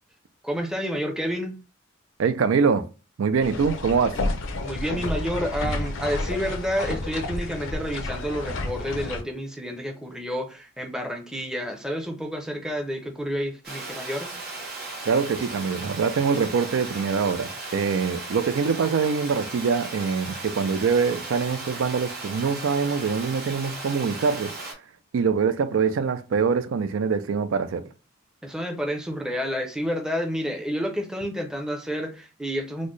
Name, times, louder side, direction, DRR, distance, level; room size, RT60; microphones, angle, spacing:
voice 1, 0.4-1.6 4.6-14.3 28.4-32.9, equal, 5° right, 0.5 m, -29 dB
voice 2, 2.2-2.9 3.2-4.2 15.1-24.5 25.1-27.8, right 5 dB, 80° right, 0.4 m, -24 dB
sound 1, 3.4-9.2, left 2 dB, 80° left, 0.5 m, -30 dB
Water, 13.6-24.7, right 3 dB, 50° right, 1.1 m, -36 dB
4.2 x 2.1 x 3.1 m
head